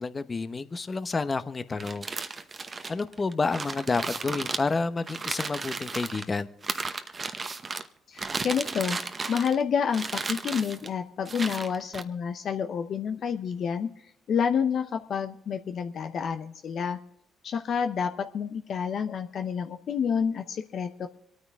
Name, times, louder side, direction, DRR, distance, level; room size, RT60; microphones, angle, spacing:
voice 1, 0.0-2.1 2.9-6.5, left 4 dB, 35° left, 11 dB, 0.9 m, -29 dB
sound 1, 1.7-6.2 6.6-7.9 8.2-9.6 9.9-10.9 11.3-12.0, right 4 dB, 35° right, 1.0 m, -34 dB
voice 2, 8.1-9.0 9.3-13.9 14.3-17.0 17.4-21.1, left 7 dB, 60° left, 7 dB, 0.7 m, -29 dB
26.0 x 9.4 x 3.6 m, 0.74 s
hypercardioid pair, 55°, 0 cm